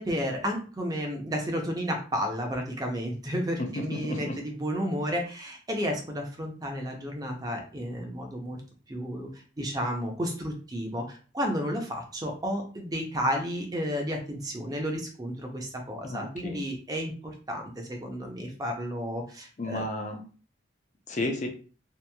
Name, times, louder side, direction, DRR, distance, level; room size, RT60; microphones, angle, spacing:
voice 1, 0.0-8.6 8.9-9.3 9.6-19.8, equal, 20° right, 2 dB, 0.5 m, -32 dB
voice 2, 3.8-4.4 16.0-16.6 19.6-20.2 21.1-21.5, left 1 dB, 40° left, 4 dB, 0.4 m, -32 dB
2.9 x 2.4 x 2.2 m, 0.38 s
head